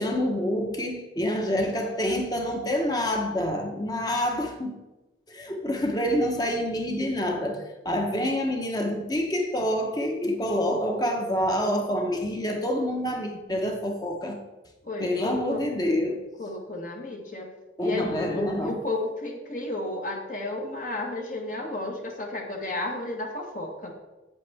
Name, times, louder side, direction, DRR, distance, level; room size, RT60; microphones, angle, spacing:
voice 1, 0.0-4.8 5.3-14.4 15.0-16.2 17.8-18.8, equal, 20° left, 3 dB, 1.0 m, -27 dB
voice 2, 14.8-15.6 16.4-17.5 17.8-23.9, left 2 dB, 45° left, 1 dB, 1.3 m, -32 dB
8.2 x 8.1 x 3.5 m, 1.1 s
head